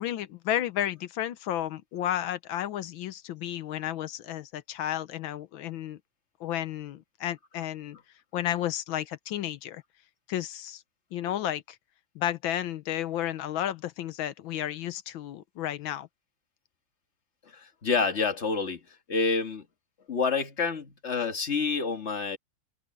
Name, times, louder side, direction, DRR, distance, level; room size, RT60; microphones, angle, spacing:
voice 1, 0.0-6.0 6.4-8.0 8.3-9.8 10.3-10.8 11.1-11.8 12.1-16.1, left 12 dB, 70° left, 1.5 m, -32 dB
voice 2, 17.5-18.8 19.1-19.7 20.1-22.4, left 4 dB, 35° left, 1.7 m, -28 dB
omnidirectional pair, 2.4 m